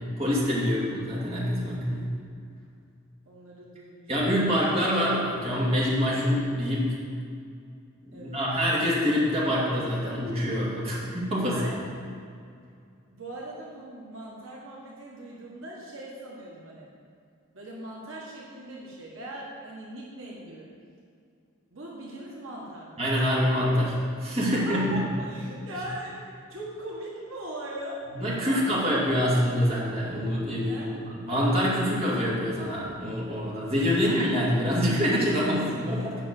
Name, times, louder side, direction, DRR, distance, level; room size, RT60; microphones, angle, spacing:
voice 1, 0.0-2.1 4.1-6.9 8.0-11.6 23.0-24.0 24.2-25.0 28.1-30.9 31.1-36.2, equal, 30° right, -7 dB, 2.3 m, -25 dB
voice 2, 3.2-4.1 8.1-8.4 11.4-11.9 13.1-16.9 17.5-20.7 21.7-23.0 24.4-28.0 28.4-29.0 30.7-30.9 33.9-34.1, right 1 dB, 70° right, -4 dB, 1.6 m, -40 dB
8.3 x 5.8 x 6.6 m, 2.3 s
head